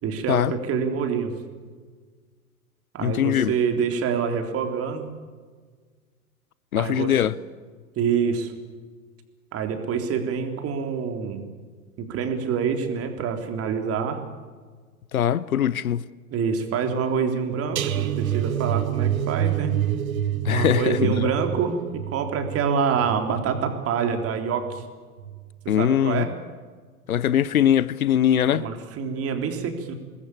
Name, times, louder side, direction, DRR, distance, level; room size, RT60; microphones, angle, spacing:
voice 1, 0.0-1.3 2.9-5.0 6.8-7.3 8.0-8.5 9.5-11.5 12.0-14.2 16.3-19.7 20.5-21.8 22.1-24.8 25.6-26.3 28.5-29.9, right 6 dB, 30° right, 3.7 m, -26 dB
voice 2, 3.0-3.5 6.7-7.3 15.1-16.0 20.4-21.3 25.7-26.3 27.1-28.7, left 10 dB, 70° left, 0.9 m, -21 dB
sound 1, 17.8-24.8 25.2-25.5 25.8-25.9, right 11 dB, 70° right, 1.7 m, -28 dB
26.5 x 20.5 x 8.7 m
figure-of-eight pair, 90°, 44 cm